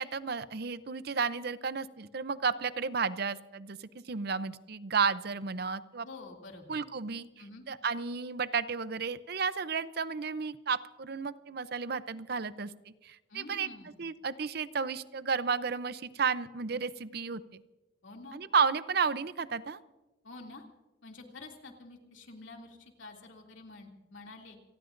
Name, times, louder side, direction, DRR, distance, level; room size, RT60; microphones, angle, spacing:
voice 1, 0.0-6.1 6.7-7.3 7.7-17.6 18.3-19.8, right 5 dB, 55° right, 14 dB, 0.6 m, -32 dB
voice 2, 6.0-6.8 7.4-7.7 13.3-13.9 18.0-18.4 20.2-20.6 21.0-24.6, left 3 dB, 80° left, 1 dB, 2.7 m, -48 dB
28.5 x 19.0 x 2.6 m, 1.1 s
head